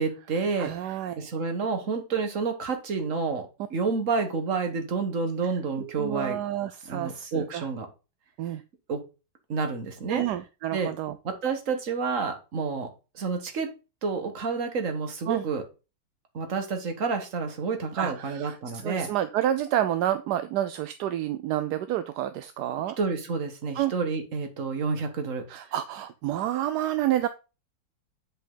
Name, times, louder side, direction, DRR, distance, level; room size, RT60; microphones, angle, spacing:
voice 1, 0.0-6.4 6.9-7.9 8.9-9.0 9.5-10.3 10.7-10.9 11.2-12.9 13.2-13.7 14.0-15.6 16.3-19.1 23.0-25.4, right 4 dB, 45° right, 6 dB, 1.6 m, -29 dB
voice 2, 0.6-1.3 5.8-7.7 8.4-8.6 10.1-11.2 15.3-15.4 18.0-18.6 18.8-23.0 23.8-23.9 25.5-27.3, right 12 dB, 70° right, 11 dB, 1.0 m, -29 dB
7.8 x 5.5 x 3.8 m, 0.30 s
omnidirectional pair, 2.1 m